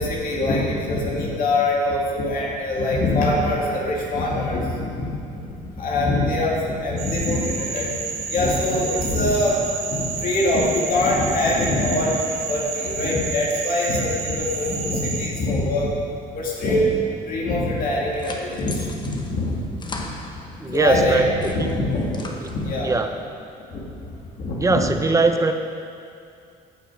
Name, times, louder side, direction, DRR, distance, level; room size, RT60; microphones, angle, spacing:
voice 1, 0.0-6.5 6.8-7.9 8.3-9.6 9.9-15.9 16.3-17.0 17.3-20.0 20.7-22.9 23.7-23.8 24.4-24.9, left 1 dB, 55° left, -4 dB, 2.4 m, -23 dB
Frog, 7.0-15.3, right 5 dB, 80° right, 1.7 m, -30 dB
sound 1, 17.8-20.8 21.2-22.9, left 2 dB, 25° left, 1.0 m, -39 dB
voice 2, 20.6-21.3 21.6-21.7 22.4-22.5 22.8-23.1 24.6-25.5, right 3 dB, 20° right, 6 dB, 0.7 m, -20 dB
14.5 x 5.8 x 5.0 m, 2.5 s
cardioid pair, 110°, 17 cm